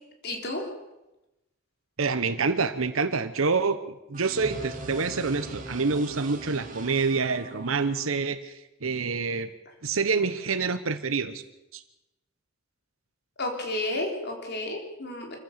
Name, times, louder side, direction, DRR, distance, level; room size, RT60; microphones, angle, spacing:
voice 1, 0.2-0.7 13.4-15.4, left 1 dB, 55° left, 2 dB, 3.8 m, -31 dB
voice 2, 2.0-3.8 4.1-9.5 9.8-11.4 11.7-11.8, right 4 dB, 85° right, 10 dB, 1.0 m, -27 dB
sound 1, 4.1-8.1, right 2 dB, 40° right, 2.4 m, -44 dB
sound 2, 4.3-7.1, right 1 dB, 20° right, 5.0 m, -40 dB
25.5 x 15.5 x 6.7 m, 0.97 s
head